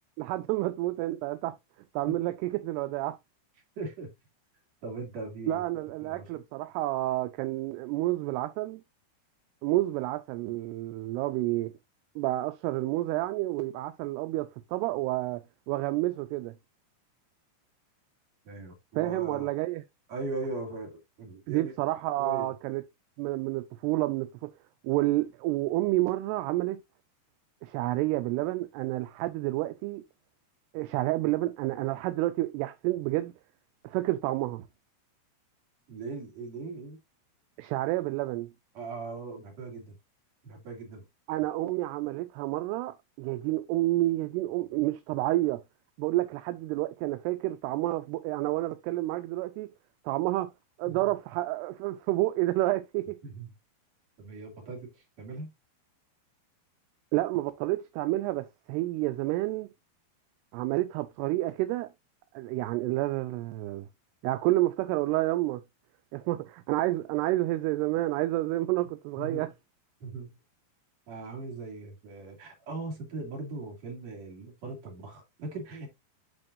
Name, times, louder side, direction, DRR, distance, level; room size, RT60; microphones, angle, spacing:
voice 1, 0.2-1.6 1.9-3.2 5.5-8.8 9.6-11.7 12.2-16.5 19.0-19.8 21.5-22.8 23.2-24.5 24.8-26.8 27.6-30.0 30.7-33.3 33.8-34.7 37.6-38.5 41.3-45.6 46.0-49.7 50.1-50.5 50.8-53.2 57.1-59.7 60.5-61.9 62.3-63.9 64.2-65.6 66.1-69.5, right 17 dB, 80° right, 2.5 m, -29 dB
voice 2, 3.8-4.1 4.8-5.6 6.0-6.4 18.4-19.5 20.1-21.7 22.2-22.5 35.9-37.0 38.7-40.0 40.4-41.1 50.8-51.1 53.2-53.5 54.2-55.5 69.2-69.5 70.0-70.4 71.1-75.9, right 3 dB, 45° right, 3.2 m, -39 dB
11.0 x 4.3 x 2.5 m
omnidirectional pair, 5.0 m